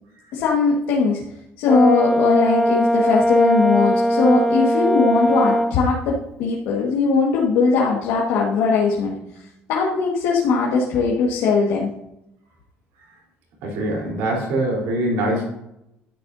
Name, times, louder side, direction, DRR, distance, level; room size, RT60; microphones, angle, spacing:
voice 1, 0.3-1.2 1.6-9.2 9.7-11.9, left 4 dB, 80° left, -3 dB, 1.7 m, -19 dB
Brass instrument, 1.7-5.8, equal, 5° left, 0.4 m, -19 dB
voice 2, 13.6-15.4, right 1 dB, 90° right, -2 dB, 3.8 m, -23 dB
12.0 x 9.3 x 2.7 m, 0.84 s
cardioid pair, 105°, 4 cm